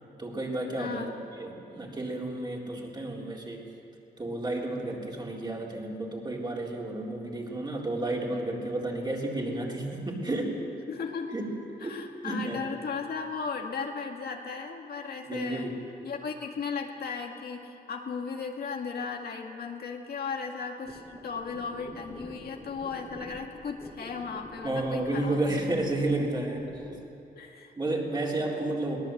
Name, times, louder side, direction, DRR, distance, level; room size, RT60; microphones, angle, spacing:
voice 1, 0.2-1.1 1.4-3.6 4.2-10.7 11.3-11.5 11.8-12.8 15.3-15.7 24.6-26.7 27.8-29.0, right 2 dB, 25° right, -2 dB, 3.9 m, -31 dB
voice 2, 0.8-1.1 10.9-11.3 11.8-15.8 16.0-25.4 27.3-27.7, left 5 dB, 70° left, 2 dB, 2.1 m, -36 dB
sound 1, 20.8-27.0, equal, 5° right, 2.6 m, -47 dB
22.5 x 18.5 x 8.0 m, 2.6 s
wide cardioid pair, 130°, 17 cm